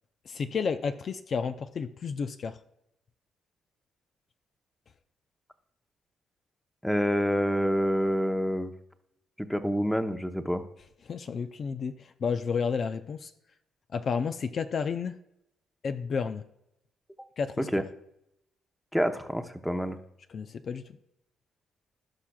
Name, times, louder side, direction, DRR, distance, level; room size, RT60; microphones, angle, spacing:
voice 1, 0.3-2.6 11.1-13.3 13.9-15.2 15.8-16.4 17.4-17.7 20.3-20.8, left 5 dB, 50° left, 9 dB, 0.5 m, -31 dB
voice 2, 6.8-8.7 9.4-10.6 17.6-17.8 18.9-20.0, equal, ahead, 7 dB, 0.8 m, -27 dB
16.5 x 5.7 x 2.3 m, 0.81 s
cardioid pair, 90°, 0 cm